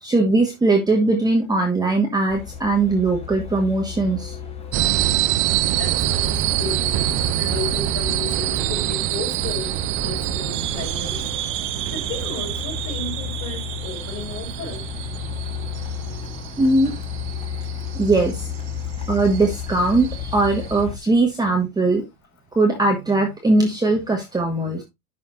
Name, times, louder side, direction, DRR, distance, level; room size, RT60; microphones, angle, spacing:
voice 1, 0.0-4.4 16.6-16.9 17.9-18.5 19.1-22.0 22.5-24.8, right 2 dB, 10° right, 1.4 m, -20 dB
Truck, 2.3-21.0, left 7 dB, 15° left, 1.2 m, -34 dB
sound 1, 4.7-20.8, right 14 dB, 30° right, 0.4 m, -26 dB
voice 2, 5.8-6.8 7.4-11.2 11.9-14.8, left 4 dB, 35° left, 4.8 m, -33 dB
11.0 x 5.7 x 2.5 m
hypercardioid pair, 125°, 45 cm